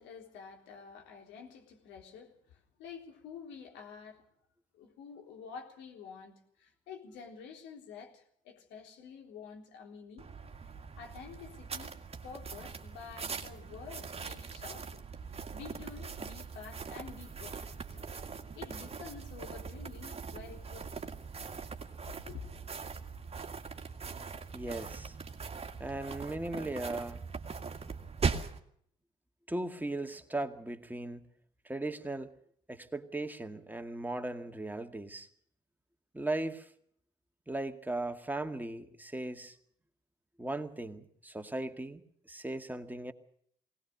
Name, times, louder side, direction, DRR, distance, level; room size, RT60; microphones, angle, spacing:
voice 1, 0.0-4.2 4.7-10.5 11.0-11.9 12.2-15.0 15.5-18.0 18.6-21.1 22.1-22.6, left 6 dB, 65° left, 2 dB, 3.8 m, -49 dB
sound 1, 10.2-28.6, right 5 dB, 30° right, 2.1 m, -41 dB
voice 2, 24.5-25.1 25.8-27.2 29.5-31.2 31.6-32.3 32.7-35.3 36.1-36.7 37.5-39.6 40.4-43.1, right 2 dB, 10° right, 6 dB, 2.1 m, -37 dB
21.5 x 18.5 x 6.7 m, 0.65 s
figure-of-eight pair, 45°, 20 cm